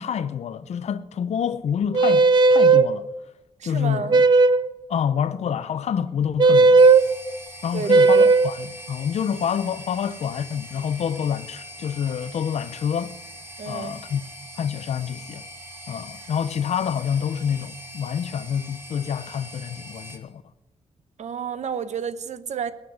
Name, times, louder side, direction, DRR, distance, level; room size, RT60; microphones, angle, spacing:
voice 1, 0.0-3.1 3.6-4.2 4.9-6.9 7.6-13.2 13.7-14.2 14.6-15.4 15.9-20.4, left 8 dB, 65° left, 0.6 m, -27 dB
sound 1, 1.9-2.9 4.1-4.7 6.4-7.0 7.9-8.5, right 3 dB, 40° right, 0.4 m, -14 dB
voice 2, 3.6-4.2 7.7-8.3 13.6-14.0 21.2-22.7, right 7 dB, 75° right, 0.9 m, -31 dB
sound 2, 6.8-20.2, equal, 20° right, 1.8 m, -42 dB
19.5 x 9.2 x 6.4 m
wide cardioid pair, 170°, 12 cm